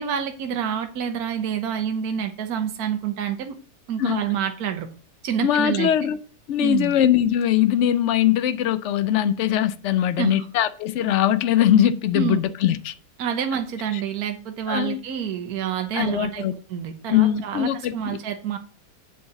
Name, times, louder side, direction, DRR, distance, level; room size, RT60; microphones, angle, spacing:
voice 1, 0.0-3.6 3.9-4.9 5.2-5.9 6.6-6.9 10.2-10.5 12.1-12.4 13.2-16.4 16.7-18.6, right 8 dB, 65° right, 1.3 m, -27 dB
voice 2, 5.4-6.2 6.5-12.9 13.9-14.0 14.7-15.0 15.9-16.5 17.1-18.2, left 11 dB, 80° left, 0.6 m, -21 dB
7.9 x 3.9 x 6.9 m
omnidirectional pair, 1.8 m